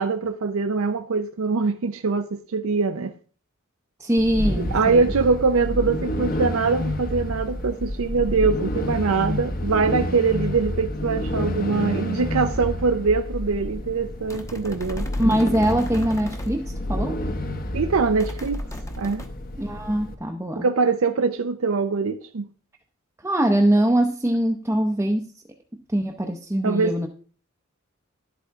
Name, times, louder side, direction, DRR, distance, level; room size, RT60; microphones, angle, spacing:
voice 1, 0.0-3.1 4.6-15.1 17.7-18.6 19.0-19.3 20.6-22.5 26.6-27.1, right 4 dB, 85° right, 0.6 m, -23 dB
voice 2, 4.0-5.1 15.2-17.2 19.6-20.7 23.2-25.3 25.9-27.1, right 1 dB, 10° right, 0.7 m, -22 dB
sound 1, 4.2-20.2, left 1 dB, 45° left, 1.0 m, -29 dB
sound 2, 14.3-16.5 18.2-19.3, left 2 dB, 15° left, 0.9 m, -40 dB
11.0 x 8.4 x 3.5 m
head